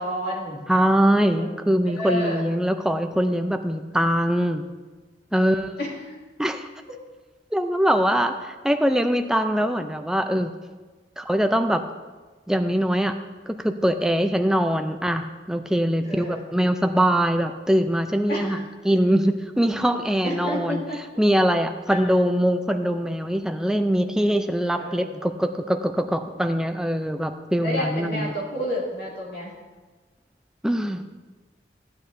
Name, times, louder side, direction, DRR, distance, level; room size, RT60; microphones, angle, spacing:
voice 1, 0.0-0.6 1.4-1.5 2.0-2.4 5.3-6.1 16.0-16.4 18.3-18.7 20.2-21.0 21.9-22.1 24.8-25.2 27.6-29.5, equal, 60° left, -5 dB, 2.6 m, -30 dB
voice 2, 0.7-4.6 5.3-5.7 6.4-6.7 7.5-10.5 11.2-11.8 12.5-13.2 13.5-18.6 18.8-20.8 21.2-28.3 30.6-31.0, equal, 5° right, 7 dB, 0.4 m, -22 dB
14.5 x 8.5 x 2.6 m, 1.3 s
head